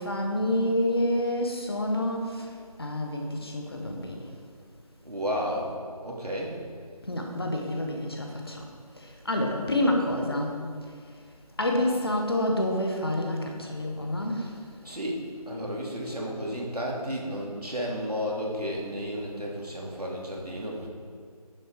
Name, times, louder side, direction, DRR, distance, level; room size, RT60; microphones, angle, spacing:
voice 1, 0.0-2.5 2.8-4.3 7.0-8.6 9.0-10.6 11.6-14.5, left 1 dB, 40° left, 2 dB, 1.3 m, -28 dB
voice 2, 5.0-5.7 6.0-6.6 14.8-15.2 15.5-20.9, equal, 75° right, -2 dB, 2.8 m, -32 dB
10.5 x 6.7 x 4.7 m, 2.1 s
figure-of-eight pair, 165°, 20 cm